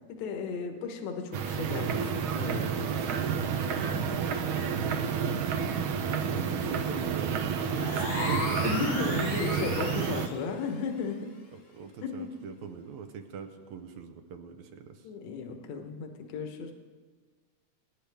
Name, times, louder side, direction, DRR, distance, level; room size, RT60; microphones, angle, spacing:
voice 1, 0.1-3.1 3.7-4.1 5.0-5.3 8.6-11.3 12.0-12.4 15.0-16.7, left 5 dB, 65° left, 5 dB, 2.2 m, -35 dB
sound 1, 1.3-10.3, right 6 dB, 90° right, 1.1 m, -30 dB
voice 2, 2.8-4.4 6.2-8.6 11.5-15.1, right 6 dB, 75° right, 6 dB, 2.1 m, -42 dB
sound 2, 7.7-10.5, left 3 dB, 85° left, 3.7 m, -36 dB
24.0 x 10.0 x 3.5 m, 1.5 s
omnidirectional pair, 3.4 m